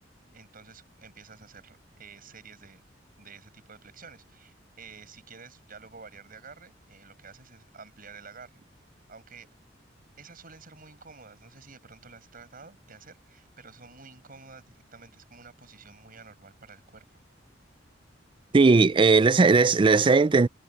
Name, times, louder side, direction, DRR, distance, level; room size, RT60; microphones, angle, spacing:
voice 1, 0.3-2.8 3.2-8.6 9.1-9.5 10.2-17.0 19.0-19.3, right 5 dB, 50° right, 6.8 m, -50 dB
voice 2, 18.5-20.5, right 4 dB, 25° right, 0.4 m, -18 dB
head